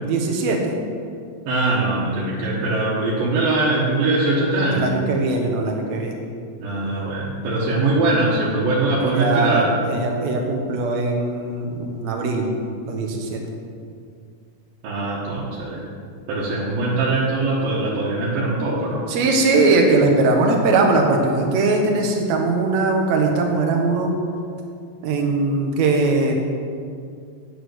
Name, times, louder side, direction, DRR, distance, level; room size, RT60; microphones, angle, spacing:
voice 1, 0.0-0.8 4.7-6.2 8.8-12.5 12.8-13.4 19.1-24.1 25.0-26.3, right 3 dB, 60° right, 1 dB, 2.3 m, -20 dB
voice 2, 1.5-4.9 6.6-9.7 14.8-15.8 16.3-19.0, right 2 dB, 85° right, -7 dB, 3.2 m, -22 dB
9.2 x 8.2 x 6.3 m, 2.3 s
omnidirectional pair, 3.9 m